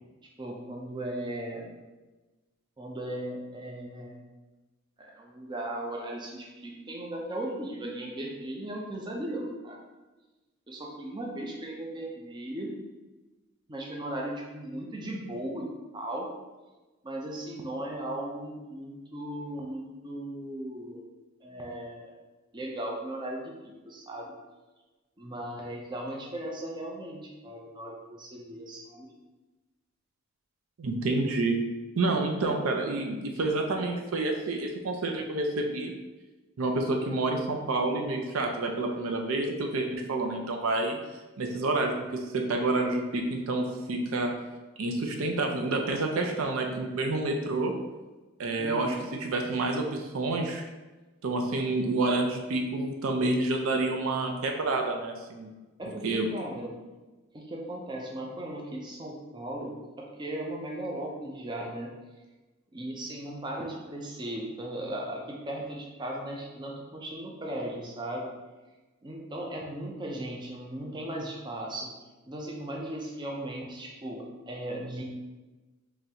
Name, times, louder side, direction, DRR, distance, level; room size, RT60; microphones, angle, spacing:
voice 1, 0.4-1.8 2.8-4.2 5.0-9.8 10.7-12.7 13.7-15.7 15.9-16.3 17.0-21.0 21.4-22.1 22.5-24.3 25.2-29.1 48.6-49.1 55.8-56.8 57.3-61.9 62.7-68.3 69.0-71.9 72.3-75.0, right 1 dB, 20° right, -1 dB, 0.5 m, -37 dB
voice 2, 30.8-31.6 32.0-35.9 36.6-41.0 41.4-44.3 44.8-47.7 48.4-50.6 51.2-55.5 56.0-56.3, right 2 dB, 80° right, 3 dB, 0.5 m, -28 dB
3.8 x 3.1 x 2.8 m, 1.2 s
head